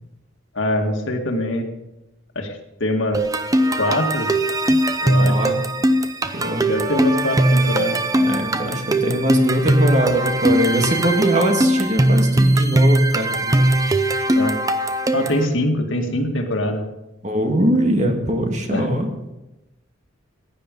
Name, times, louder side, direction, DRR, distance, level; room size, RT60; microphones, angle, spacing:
voice 1, 0.6-1.7 2.4-2.5 2.8-3.3 3.8-4.3 5.0-5.4 6.7-8.0 14.4-14.6 15.1-16.9 18.7-18.9, left 1 dB, 70° left, 3 dB, 2.1 m, -23 dB
sound 1, 3.1-15.5, right 1 dB, 15° right, 0.7 m, -19 dB
voice 2, 5.2-5.6 6.3-6.7 8.2-13.9 17.2-19.1, right 1 dB, 35° right, 3 dB, 1.9 m, -21 dB
15.5 x 10.0 x 5.4 m, 0.95 s
head